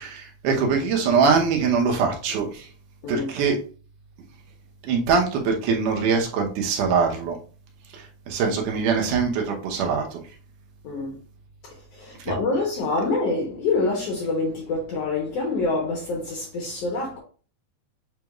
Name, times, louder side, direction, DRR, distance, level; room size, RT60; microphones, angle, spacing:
voice 1, 0.0-2.6 3.1-3.6 4.8-7.4 8.3-10.2, right 5 dB, 80° right, 2.5 m, -22 dB
voice 2, 10.8-11.2 11.6-17.2, left 3 dB, 65° left, 1.7 m, -26 dB
7.4 x 3.0 x 2.3 m
omnidirectional pair, 3.6 m